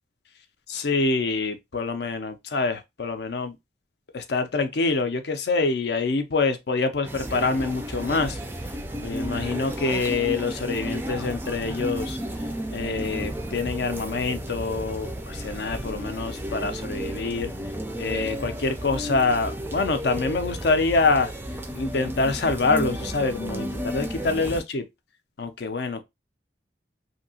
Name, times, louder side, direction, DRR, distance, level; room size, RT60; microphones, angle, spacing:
voice 1, 0.7-3.5 4.1-8.4 9.0-12.2 12.7-17.5 18.0-21.3 21.8-24.8 25.4-26.0, left 3 dB, 60° left, 0.5 m, -26 dB
sound 1, 7.0-24.6, right 1 dB, 10° right, 0.3 m, -33 dB
2.8 x 2.6 x 2.7 m
head